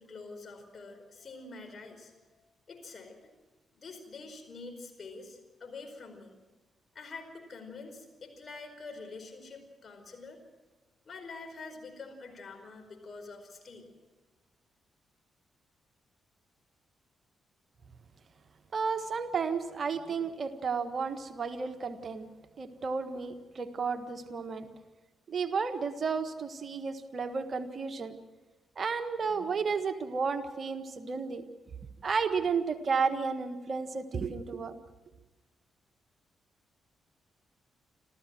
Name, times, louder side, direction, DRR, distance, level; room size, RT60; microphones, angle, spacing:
voice 1, 0.0-2.1 2.7-3.2 3.7-6.4 6.9-10.4 11.0-13.9, left 3 dB, 50° left, 5 dB, 5.0 m, -46 dB
voice 2, 18.7-22.3 22.6-24.7 25.3-28.2 28.8-31.4 32.0-34.8, right 5 dB, 50° right, 9 dB, 1.5 m, -32 dB
27.5 x 14.0 x 7.7 m, 1.2 s
hypercardioid pair, 40°, 0 cm